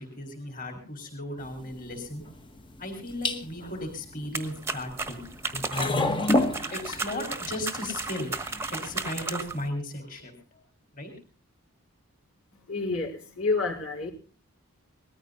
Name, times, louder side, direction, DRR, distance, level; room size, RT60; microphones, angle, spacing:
voice 1, 0.0-2.2 2.8-5.3 5.7-5.9 6.3-10.6 10.9-11.1, left 1 dB, 40° left, 4 dB, 4.8 m, -36 dB
sound 1, 1.4-9.3, left 2 dB, 20° left, 1.2 m, -32 dB
sound 2, 4.3-9.7, right 4 dB, 10° right, 1.2 m, -34 dB
voice 2, 12.5-14.1, left 3 dB, 70° left, -2 dB, 4.6 m, -29 dB
20.5 x 14.5 x 4.1 m, 0.35 s
head